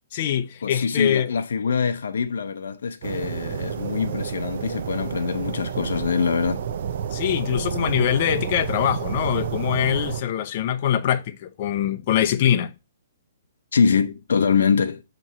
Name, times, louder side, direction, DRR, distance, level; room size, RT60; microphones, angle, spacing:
voice 1, 0.1-1.3 7.1-12.7, left 10 dB, 35° left, 0.6 m, -23 dB
voice 2, 0.6-6.7 13.7-15.0, left 6 dB, 80° left, 0.6 m, -24 dB
sound 1, 3.0-10.2, right 8 dB, 50° right, 0.4 m, -30 dB
7.4 x 3.0 x 5.4 m
hypercardioid pair, 165°, 0 cm